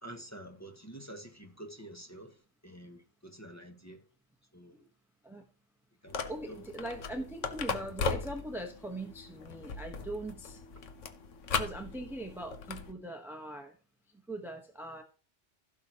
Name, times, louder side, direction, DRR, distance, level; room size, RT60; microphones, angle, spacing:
voice 1, 0.0-4.0 4.5-4.8 6.0-6.2 6.5-6.6, right 1 dB, 15° left, 1.5 m, -48 dB
sound 1, 6.1-12.9, left 5 dB, 85° left, 1.4 m, -38 dB
voice 2, 6.3-10.6 11.5-13.7 14.3-15.0, right 1 dB, ahead, 1.1 m, -41 dB
15.5 x 6.5 x 3.0 m
omnidirectional pair, 1.2 m